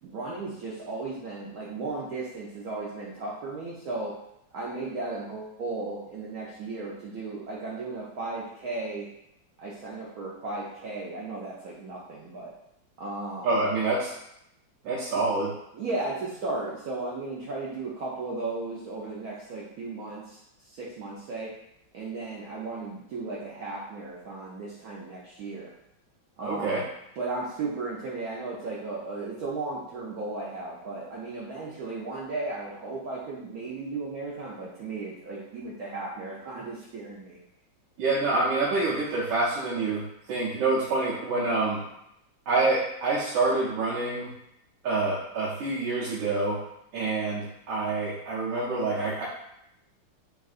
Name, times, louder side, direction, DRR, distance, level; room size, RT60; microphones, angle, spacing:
voice 1, 0.0-4.1 4.5-9.1 9.6-12.5 13.0-13.5 15.7-21.5 21.9-25.7 26.4-26.8 27.2-37.4, right 3 dB, 75° right, -6 dB, 0.9 m, -35 dB
voice 2, 13.4-14.1 14.8-15.5 26.4-26.8 38.0-41.8 42.5-44.3 44.8-46.6 46.9-49.3, right 3 dB, 90° right, -7 dB, 1.4 m, -27 dB
3.6 x 2.4 x 2.4 m, 0.80 s
omnidirectional pair, 2.1 m